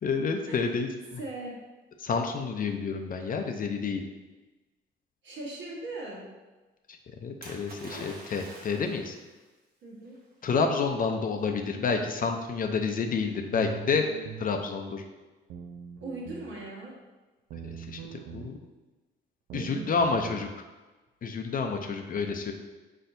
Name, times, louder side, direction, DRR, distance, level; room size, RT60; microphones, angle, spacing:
voice 1, 0.0-1.2 2.0-4.0 7.2-9.1 10.4-14.1 14.4-15.0 17.6-18.6 19.5-20.5 21.2-22.5, left 5 dB, 45° left, 5 dB, 0.5 m, -29 dB
voice 2, 1.2-1.6 5.2-6.2 9.8-10.2 16.0-16.9 19.5-19.9, right 2 dB, 70° right, -3 dB, 1.4 m, -39 dB
Splash splatter, 7.4-9.2 10.1-10.2, right 1 dB, 50° right, 1.1 m, -45 dB
sound 1, 13.5-14.5 15.5-16.5 17.5-18.5 19.5-20.5, right 7 dB, 85° right, 0.5 m, -42 dB
4.5 x 4.3 x 2.6 m, 1.2 s
cardioid pair, 90°, 20 cm